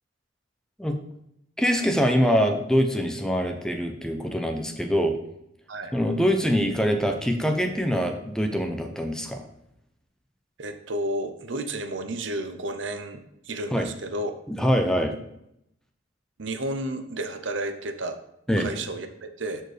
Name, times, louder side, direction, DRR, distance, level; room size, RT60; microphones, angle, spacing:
voice 1, 1.6-5.2 5.9-9.4 13.7-13.9 14.5-15.1 18.5-18.7, equal, 5° left, 5 dB, 0.6 m, -24 dB
voice 2, 10.6-14.3 16.4-18.2 18.6-19.6, right 1 dB, 65° right, 8 dB, 0.7 m, -32 dB
12.5 x 4.5 x 3.3 m, 0.78 s
head